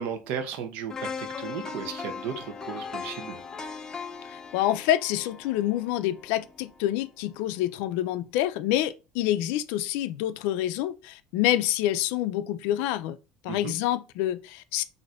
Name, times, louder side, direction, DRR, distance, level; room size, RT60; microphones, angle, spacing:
voice 1, 0.0-3.4 13.5-13.7, right 7 dB, 75° right, 0.7 m, -35 dB
sound 1, 0.9-6.9 7.3-7.4, left 5 dB, 20° left, 0.4 m, -39 dB
voice 2, 4.3-13.2 13.4-14.8, left 13 dB, 85° left, 0.3 m, -27 dB
4.1 x 2.6 x 2.4 m
cardioid pair, 140°, 3 cm